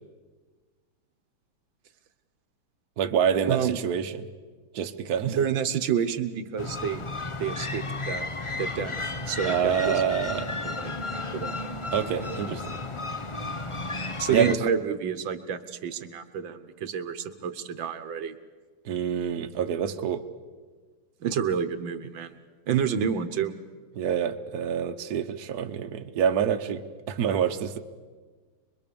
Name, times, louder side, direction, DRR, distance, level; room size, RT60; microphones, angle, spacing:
voice 1, 3.0-4.3 4.7-5.4 9.4-10.5 11.9-12.8 14.3-14.6 18.8-20.2 24.0-27.8, right 8 dB, 55° right, 6 dB, 1.4 m, -27 dB
voice 2, 3.5-3.8 5.3-7.0 7.4-8.3 8.6-8.9 9.3-10.0 10.6-11.5 14.2-18.3 21.2-22.3 22.7-23.5, right 8 dB, 80° right, 10 dB, 1.8 m, -29 dB
sound 1, 6.6-14.5, left 2 dB, 30° left, 0.5 m, -33 dB
25.5 x 22.0 x 7.0 m, 1.5 s
omnidirectional pair, 2.1 m